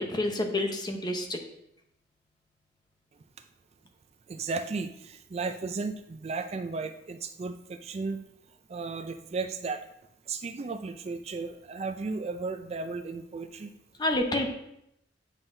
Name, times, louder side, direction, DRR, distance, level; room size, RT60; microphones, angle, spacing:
voice 1, 0.0-1.4 14.0-14.5, left 1 dB, 25° left, 4 dB, 0.8 m, -28 dB
voice 2, 4.3-8.2 8.7-9.8 10.3-13.7, right 4 dB, 35° right, 8 dB, 0.4 m, -34 dB
8.9 x 5.5 x 2.7 m, 0.81 s
head